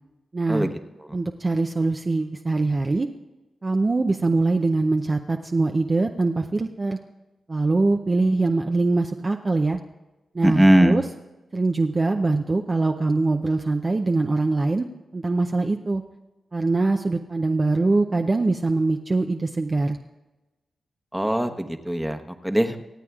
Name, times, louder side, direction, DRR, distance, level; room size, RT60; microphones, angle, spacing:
voice 1, 0.3-0.7 1.1-3.1 3.6-7.0 7.5-9.8 10.3-11.0 11.5-14.9 15.1-16.0 16.5-20.0, right 3 dB, 40° right, 4 dB, 0.6 m, -23 dB
voice 2, 10.4-11.0 21.1-22.9, right 1 dB, 5° right, 6 dB, 1.0 m, -20 dB
25.0 x 8.5 x 2.4 m, 1.1 s
cardioid pair, 50°, 0 cm